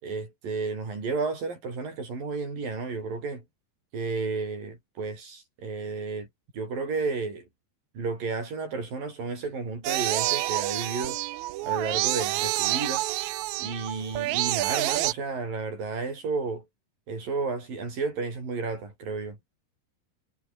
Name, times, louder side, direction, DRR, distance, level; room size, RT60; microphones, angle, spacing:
voice 1, 0.0-3.4 3.9-6.3 6.5-7.4 7.9-11.2 11.6-13.0 13.6-16.6 17.1-19.4, right 4 dB, 65° right, 9.6 m, -32 dB
sound 1, 9.8-15.1, right 17 dB, 85° right, 1.6 m, -28 dB
omnidirectional pair, 4.3 m